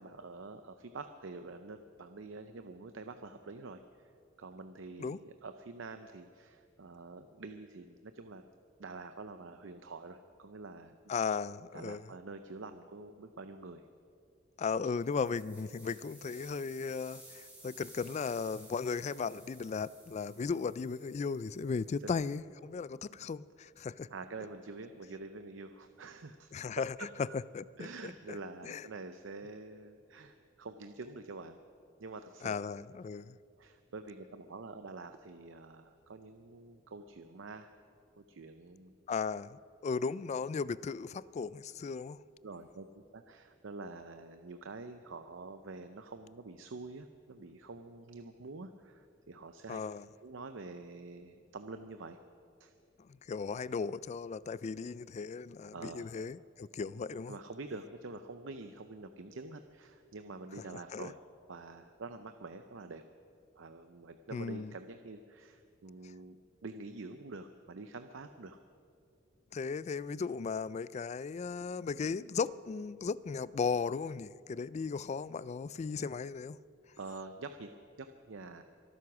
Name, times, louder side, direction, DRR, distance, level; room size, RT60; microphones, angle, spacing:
voice 1, 0.0-4.1 4.4-8.4 8.8-11.0 11.7-13.8 14.8-14.9 22.0-22.1 24.1-26.5 27.0-27.1 27.8-31.6 32.0-32.6 33.6-37.7 38.2-38.9 42.4-42.9 43.1-49.8 50.2-52.2 52.6-52.7 55.7-56.1 57.3-61.2 61.5-63.0 63.5-68.6 77.0-78.6, right 3 dB, 75° right, 0.6 m, -47 dB
voice 2, 11.1-12.0 14.6-24.1 26.5-26.9 27.3-27.6 28.0-28.4 28.6-28.9 32.4-33.4 39.1-42.2 49.7-50.1 53.0-57.4 60.9-61.1 64.3-64.7 69.5-76.6, left 5 dB, 35° left, 0.3 m, -36 dB
sound 1, 14.9-22.0, right 2 dB, 10° right, 3.9 m, -56 dB
24.5 x 9.6 x 6.1 m
head